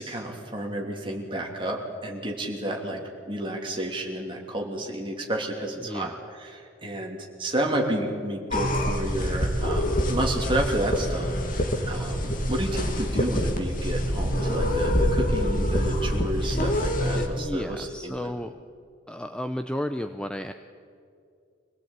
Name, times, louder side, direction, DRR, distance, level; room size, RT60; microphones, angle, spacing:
voice 1, 0.0-3.0 3.3-18.3, right 1 dB, 25° right, 0 dB, 3.0 m, -31 dB
voice 2, 5.8-6.2 16.5-16.7 17.2-18.5 19.1-20.5, equal, 5° left, 7 dB, 0.6 m, -33 dB
sound 1, 8.5-17.3, equal, 45° left, 2.3 m, -26 dB
sound 2, 13.7-16.6, right 1 dB, 65° right, 2.4 m, -36 dB
25.5 x 17.5 x 9.0 m, 2.4 s
head